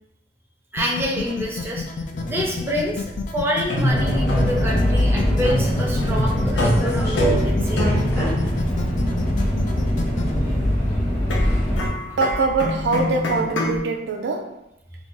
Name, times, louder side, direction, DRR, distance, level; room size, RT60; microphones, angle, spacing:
voice 1, 0.7-1.8 2.2-3.1 3.3-7.8 10.5-10.6 12.1-12.2, equal, 15° right, -1 dB, 0.5 m, -27 dB
sound 1, 0.8-10.4, left 4 dB, 45° left, 0.3 m, -30 dB
sound 2, 2.1-13.8, equal, 85° left, 0.6 m, -27 dB
Subway metro underground, 3.9-11.9, left 1 dB, 15° left, 0.9 m, -22 dB
voice 2, 12.2-14.6, right 3 dB, 65° right, 2 dB, 0.4 m, -23 dB
2.4 x 2.3 x 3.8 m, 0.80 s
head